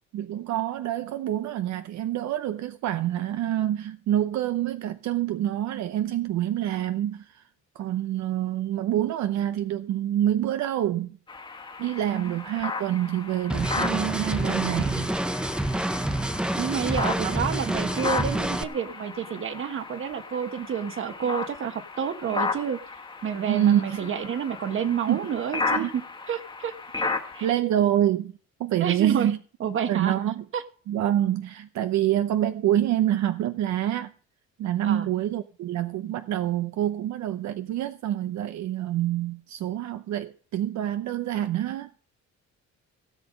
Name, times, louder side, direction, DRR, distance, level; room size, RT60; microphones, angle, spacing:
voice 1, 0.1-7.5 7.7-11.2 11.8-15.1 17.2-17.3 23.5-24.0 25.1-25.2 25.7-25.9 27.4-28.3 28.6-29.4 29.9-30.4 30.9-34.1 34.6-41.9, right 12 dB, 70° right, 0.7 m, -26 dB
sound 1, 11.3-27.5, left 4 dB, 15° left, 1.5 m, -35 dB
sound 2, 13.5-18.6, right 1 dB, 5° right, 0.6 m, -27 dB
voice 2, 16.6-22.8 23.2-27.5 28.8-29.3 29.6-30.1 30.5-30.6 34.8-35.1, right 7 dB, 45° right, 1.4 m, -29 dB
17.0 x 8.0 x 5.1 m
cardioid pair, 175°, 29 cm